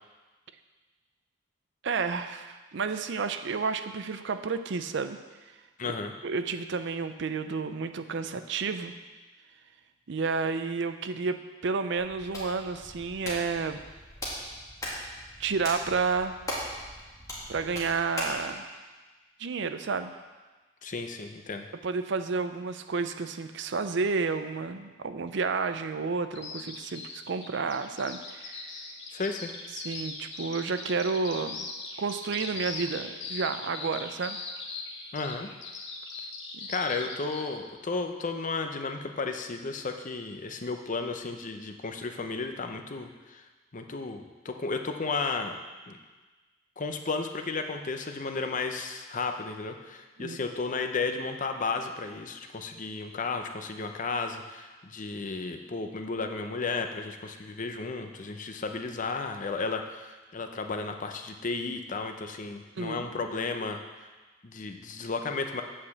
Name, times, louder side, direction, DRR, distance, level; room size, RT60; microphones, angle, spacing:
voice 1, 1.8-5.2 5.9-6.0 6.2-8.9 10.1-13.8 15.4-16.4 17.5-18.8 19.4-20.1 21.8-28.8 29.7-31.7 32.0-34.4 36.5-36.7 50.2-50.4 62.8-63.1, right 4 dB, 65° right, 9 dB, 0.5 m, -31 dB
voice 2, 5.8-6.1 20.8-21.7 29.1-29.5 35.1-35.5 36.7-43.4 43.7-45.6 45.9-46.0 46.8-63.8 64.4-65.6, left 4 dB, 40° left, 6 dB, 0.7 m, -33 dB
Hands, 12.0-18.4, equal, 15° left, 2.1 m, -39 dB
Bird vocalization bird call bird song, 26.3-37.5, left 4 dB, 65° left, 1.2 m, -40 dB
8.4 x 5.0 x 7.2 m, 1.3 s
head